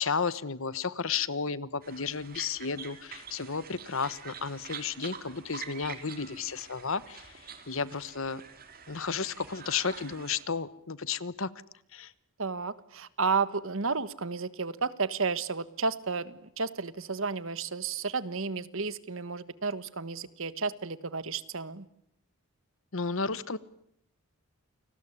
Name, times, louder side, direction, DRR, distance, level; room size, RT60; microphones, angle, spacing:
voice 1, 0.0-8.4 8.9-11.5 11.9-12.1 22.9-23.6, left 5 dB, 65° left, 17 dB, 1.1 m, -33 dB
sound 1, 1.8-10.4, right 6 dB, 40° right, 3.2 m, -46 dB
voice 2, 12.4-21.9, right 4 dB, 65° right, 15 dB, 1.4 m, -32 dB
29.0 x 20.0 x 9.9 m, 0.76 s
head